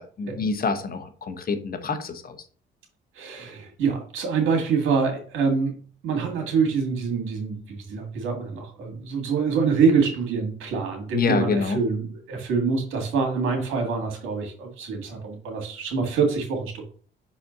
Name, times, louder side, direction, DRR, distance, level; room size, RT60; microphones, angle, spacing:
voice 1, 0.0-2.4 11.1-11.8, left 4 dB, 50° left, 9 dB, 1.0 m, -26 dB
voice 2, 3.2-5.8 6.0-16.8, right 5 dB, 90° right, 3 dB, 1.9 m, -25 dB
5.8 x 4.2 x 3.9 m, 0.43 s
cardioid pair, 90°, 20 cm